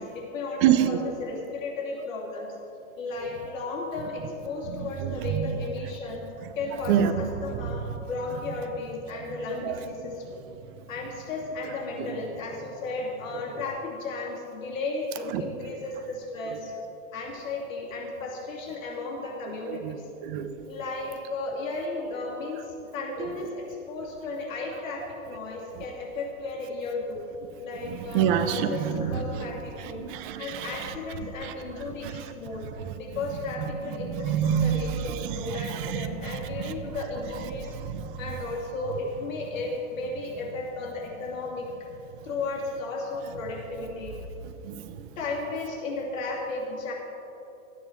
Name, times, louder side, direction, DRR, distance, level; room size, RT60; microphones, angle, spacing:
voice 1, 0.0-2.6 3.0-6.3 6.6-10.4 10.9-16.7 17.1-20.1 20.6-27.2 27.6-32.6 33.0-37.7 38.2-41.7 42.2-44.1 45.2-46.9, left 3 dB, 65° left, -2 dB, 2.7 m, -34 dB
voice 2, 0.6-1.0 4.8-5.5 6.9-7.2 9.6-9.8 15.3-15.4 19.7-20.5 23.2-23.3 27.8-29.2 30.0-30.9 31.4-31.5 32.0-32.2 34.0-36.8 37.8-38.2 44.6-45.0, right 9 dB, 40° right, 10 dB, 0.8 m, -27 dB
13.0 x 9.2 x 4.5 m, 2.9 s
hypercardioid pair, 125°, 42 cm